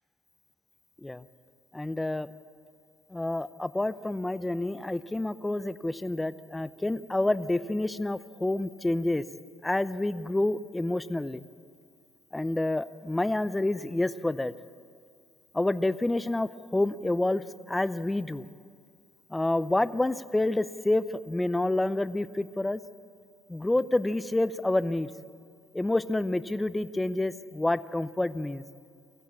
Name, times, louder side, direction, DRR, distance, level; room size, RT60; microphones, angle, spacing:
voice 1, 1.7-2.3 3.1-9.2 9.6-11.4 12.3-14.5 15.5-18.5 19.3-22.8 23.5-25.1 25.7-28.6, left 2 dB, 10° left, 14 dB, 0.6 m, -28 dB
22.5 x 15.5 x 8.6 m, 2.2 s
cardioid pair, 120°, 0 cm